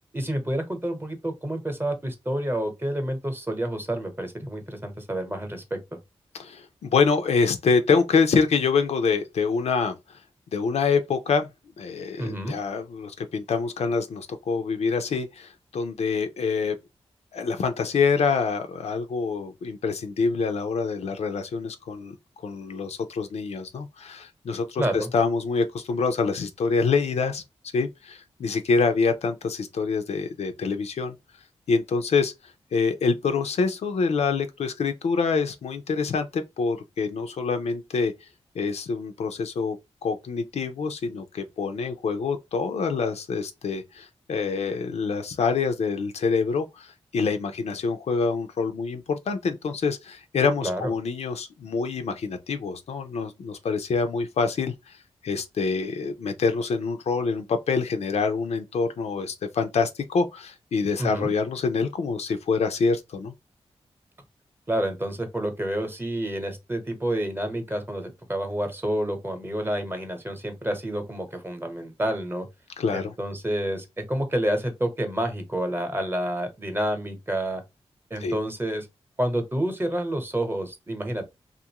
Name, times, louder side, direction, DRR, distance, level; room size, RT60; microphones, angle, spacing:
voice 1, 0.1-5.8 12.2-12.5 24.8-25.1 50.6-50.9 61.0-61.3 64.7-72.5 72.9-77.6 78.1-78.9 79.2-81.2, right 1 dB, 20° right, 0.9 m, -29 dB
voice 2, 6.4-10.0 10.5-11.5 11.8-16.7 17.3-22.1 22.4-27.4 27.7-31.1 31.7-32.3 32.7-38.3 38.5-54.9 55.2-63.3 72.8-73.1 78.2-78.3, left 5 dB, 80° left, 0.5 m, -26 dB
2.6 x 2.5 x 2.8 m
cardioid pair, 75°, 11 cm